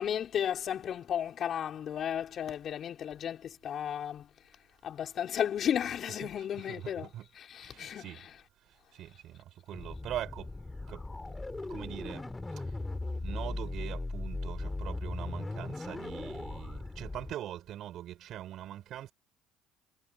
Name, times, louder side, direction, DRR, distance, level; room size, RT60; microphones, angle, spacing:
voice 1, 0.0-4.3 4.8-7.1 7.4-8.2, left 9 dB, 50° left, 4.2 m, -34 dB
voice 2, 6.7-7.2 7.7-8.2 9.0-9.4 9.7-10.5 10.9-11.0 11.7-12.2 13.2-19.1, right 12 dB, 60° right, 5.7 m, -42 dB
sound 1, 9.7-17.3, left 2 dB, 15° left, 5.3 m, -38 dB
supercardioid pair, 75°, 0 cm